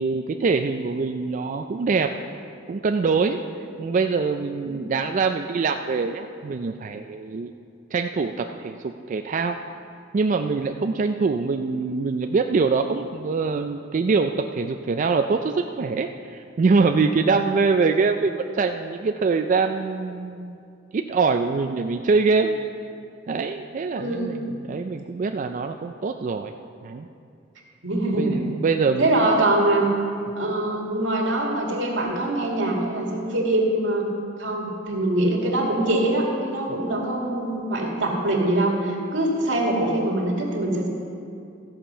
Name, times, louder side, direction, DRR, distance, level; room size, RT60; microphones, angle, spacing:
voice 1, 0.0-2.1 2.7-3.4 3.8-7.5 7.9-9.6 10.1-20.6 20.9-22.6 23.3-26.5 26.8-27.1 28.2-29.3, right 4 dB, 45° right, 5 dB, 0.4 m, -24 dB
voice 2, 24.0-24.5 27.8-28.4 29.0-29.9 30.4-34.1 34.4-40.9, right 1 dB, 85° right, -1 dB, 2.1 m, -23 dB
14.0 x 7.3 x 5.5 m, 2.5 s
head